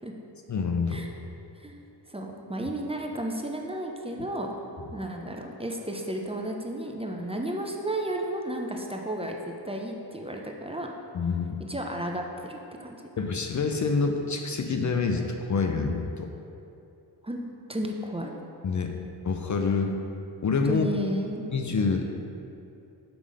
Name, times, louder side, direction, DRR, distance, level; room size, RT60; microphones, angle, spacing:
voice 1, 0.5-1.0 11.1-11.6 13.2-16.3 18.6-18.9 19.2-19.9 20.4-20.9 21.5-22.0, left 4 dB, 45° left, 4 dB, 0.6 m, -26 dB
voice 2, 2.1-4.5 4.9-10.9 11.7-13.0 17.2-17.4 17.7-18.3 19.8-19.9 20.7-21.4, right 1 dB, 15° right, 1 dB, 0.7 m, -33 dB
7.1 x 3.6 x 4.9 m, 2.7 s
cardioid pair, 55°, 43 cm